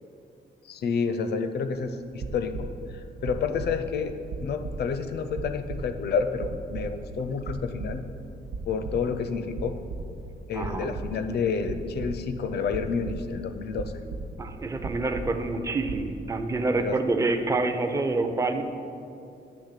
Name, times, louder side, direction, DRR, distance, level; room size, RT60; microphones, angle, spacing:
voice 1, 0.6-4.1 4.4-8.1 8.7-9.7 10.5-13.9 16.8-17.0, left 5 dB, 70° left, 9 dB, 0.5 m, -29 dB
sound 1, 2.0-2.9 3.2-4.0 4.3-6.0 6.4-7.2 7.5-8.2 8.5-9.2 9.5-10.2 10.6-11.4 11.6-12.3 12.7-13.5 13.8-14.5 14.8-15.6 15.8-16.1, right 3 dB, 70° right, 0.7 m, -36 dB
voice 2, 10.5-10.9 14.4-18.6, right 3 dB, 20° right, 6 dB, 0.5 m, -27 dB
9.6 x 3.4 x 6.6 m, 2.5 s
wide cardioid pair, 155°, 18 cm